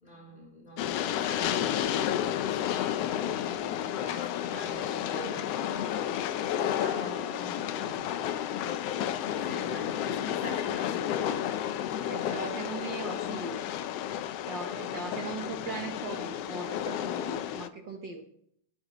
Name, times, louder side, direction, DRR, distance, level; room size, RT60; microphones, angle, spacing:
voice 1, 0.0-1.8 2.1-6.1 6.5-8.3 9.3-11.4, left 1 dB, 15° left, 3.1 m, -45 dB
Train, 0.8-17.7, left 10 dB, 80° left, 1.4 m, -31 dB
voice 2, 12.1-13.6 14.5-18.2, right 4 dB, 70° right, 1.1 m, -39 dB
14.5 x 12.0 x 3.0 m
omnidirectional pair, 3.5 m